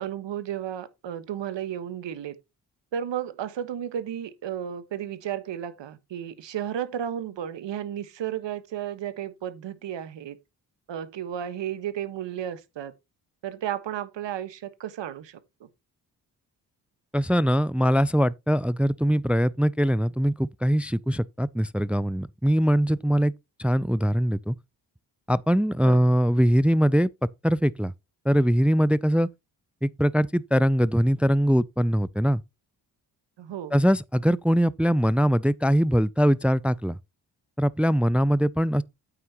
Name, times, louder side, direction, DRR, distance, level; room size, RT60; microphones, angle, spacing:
voice 1, 0.0-2.3 2.9-10.4 10.9-12.9 13.4-15.7 25.8-26.2 33.4-33.7, right 10 dB, 65° right, 1.5 m, -33 dB
voice 2, 17.1-23.3 23.6-24.6 25.3-27.1 27.4-27.9 28.3-29.3 29.8-32.4 33.7-37.0 37.6-38.8, equal, 5° right, 0.4 m, -22 dB
9.0 x 9.0 x 2.9 m
hypercardioid pair, 40°, 46 cm